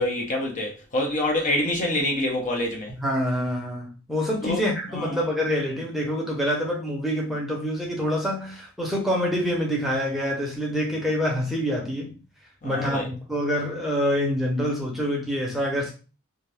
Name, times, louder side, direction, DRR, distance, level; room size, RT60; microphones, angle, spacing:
voice 1, 0.0-2.9 4.4-4.6 4.9-5.2 12.6-13.1, left 1 dB, 40° left, 0.6 m, -26 dB
voice 2, 3.0-12.2 12.6-15.9, equal, ahead, 0.7 m, -26 dB
2.5 x 2.3 x 3.3 m
head